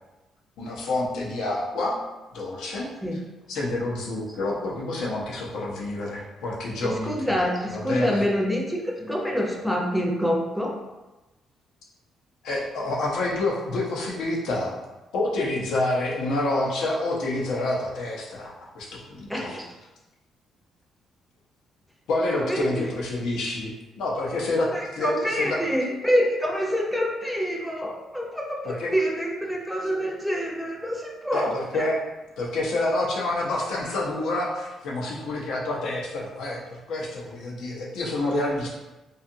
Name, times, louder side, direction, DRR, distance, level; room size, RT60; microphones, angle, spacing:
voice 1, 0.6-2.0 2.3-2.9 3.5-7.4 7.7-8.3 12.4-14.8 15.1-19.6 22.1-23.7 24.0-25.6 28.6-28.9 31.3-32.0 32.4-38.7, left 2 dB, 80° left, -3 dB, 0.6 m, -28 dB
voice 2, 6.8-10.8 19.3-19.7 22.3-22.9 24.7-31.9, equal, ahead, -1 dB, 0.5 m, -26 dB
2.7 x 2.3 x 2.6 m, 1.1 s
cardioid pair, 90°, 0 cm